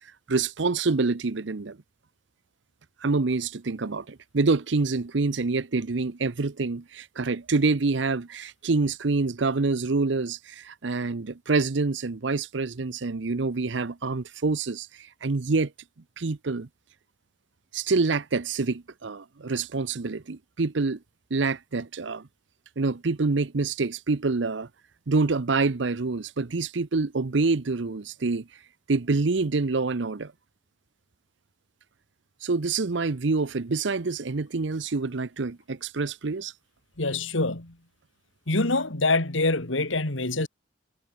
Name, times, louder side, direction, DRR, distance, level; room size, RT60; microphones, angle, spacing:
voice 1, 0.3-1.8 3.0-15.7 16.2-16.7 17.7-21.0 21.3-22.3 22.8-24.7 25.1-28.5 28.9-30.3 32.4-36.5, right 3 dB, 70° right, 0.7 m, -26 dB
voice 2, 37.0-37.7 38.5-40.5, left 2 dB, 85° left, 2.8 m, -25 dB
head